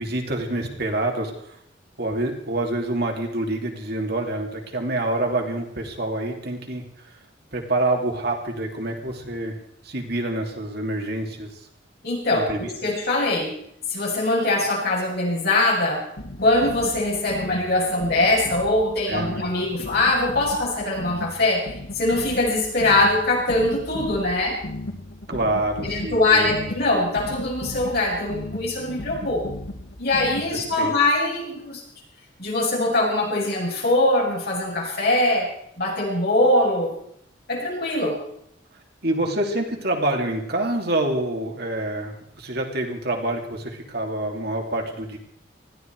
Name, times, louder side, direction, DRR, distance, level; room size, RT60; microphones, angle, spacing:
voice 1, 0.0-1.6 2.0-7.1 7.5-9.6 9.8-11.5 12.3-12.6 19.1-19.4 25.3-26.5 30.5-30.9 39.0-45.2, right 1 dB, 55° right, 2 dB, 2.8 m, -27 dB
voice 2, 12.0-13.5 13.9-16.0 16.4-21.7 21.9-24.6 25.8-29.4 30.0-31.8 32.4-35.5 35.8-36.9 37.5-38.2, left 2 dB, 55° left, -3 dB, 7.7 m, -22 dB
sound 1, 16.2-30.8, left 1 dB, 75° left, 2.3 m, -36 dB
20.0 x 15.0 x 4.7 m, 0.71 s
head